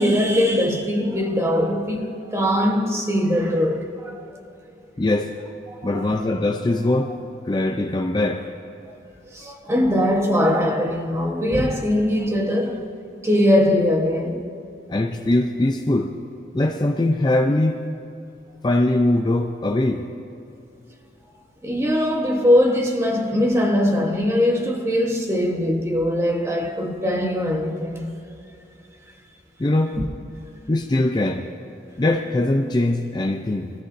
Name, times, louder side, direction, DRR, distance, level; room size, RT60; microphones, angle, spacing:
voice 1, 0.0-4.2 5.7-6.0 8.9-9.0 9.3-12.9 13.2-14.4 21.6-28.1, left 1 dB, 15° right, 1.1 m, -21 dB
voice 2, 5.0-5.3 5.8-7.2 7.5-8.5 14.9-16.1 16.5-17.8 18.6-20.0 29.6-30.0 30.7-31.5 32.0-33.7, left 1 dB, 25° left, 0.4 m, -21 dB
21.0 x 13.5 x 2.6 m
head